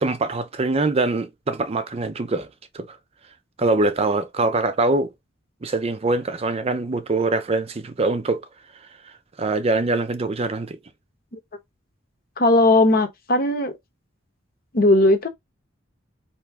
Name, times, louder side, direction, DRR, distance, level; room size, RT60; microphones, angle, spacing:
voice 1, 0.0-2.5 2.7-3.0 3.6-5.1 5.6-8.5 9.4-10.8, right 3 dB, 30° right, 0.5 m, -23 dB
voice 2, 12.4-13.7 14.7-15.3, left 2 dB, 50° left, 1.0 m, -17 dB
4.5 x 2.9 x 3.5 m
head